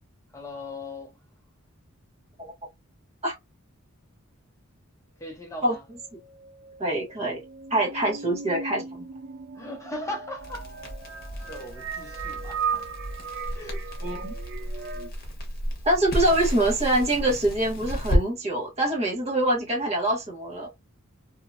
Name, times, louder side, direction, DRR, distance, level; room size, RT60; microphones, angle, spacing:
voice 1, 0.3-1.2 5.2-5.8 9.5-10.7 11.4-12.9 13.5-13.9 14.6-14.9, left 2 dB, 15° left, 0.7 m, -38 dB
sound 1, 5.5-15.1, right 6 dB, 45° right, 0.4 m, -37 dB
voice 2, 6.8-7.4 7.7-9.0 14.0-14.3 15.8-20.7, right 1 dB, 30° right, 1.2 m, -25 dB
Crackle, 10.4-18.2, equal, 45° left, 1.0 m, -32 dB
2.8 x 2.7 x 2.2 m
head